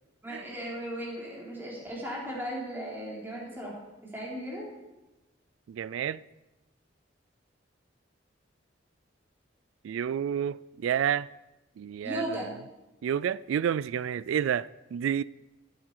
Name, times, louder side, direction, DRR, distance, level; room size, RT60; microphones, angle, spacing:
voice 1, 0.2-4.7 12.0-12.5, equal, 10° right, 3.5 m, -37 dB
voice 2, 5.7-6.2 9.8-11.3 11.8-12.5 13.0-15.2, right 9 dB, 90° right, 0.3 m, -30 dB
16.5 x 8.4 x 4.7 m
head